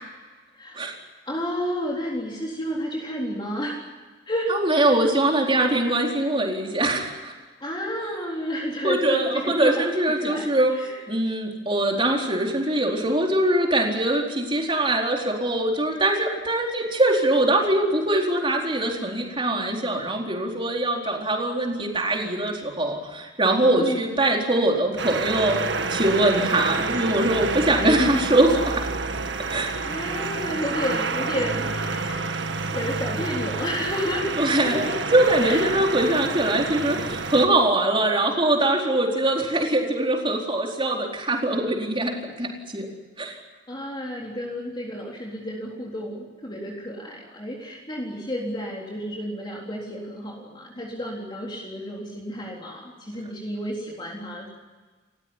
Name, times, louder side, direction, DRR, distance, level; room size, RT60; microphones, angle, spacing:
voice 1, 1.3-3.8 4.3-5.0 7.6-9.9 10.2-10.9 23.8-24.1 29.8-32.4 32.7-34.3 34.6-35.0 35.4-35.7 43.7-54.5, equal, 25° left, -2 dB, 3.9 m, -31 dB
voice 2, 4.5-7.3 8.8-10.7 11.1-25.6 25.9-28.8 29.5-29.7 34.4-42.9 43.2-43.4, right 1 dB, 30° right, 1 dB, 4.3 m, -22 dB
sound 1, 25.0-37.5, right 4 dB, 75° right, 1.8 m, -28 dB
30.0 x 15.5 x 9.9 m, 1.4 s
head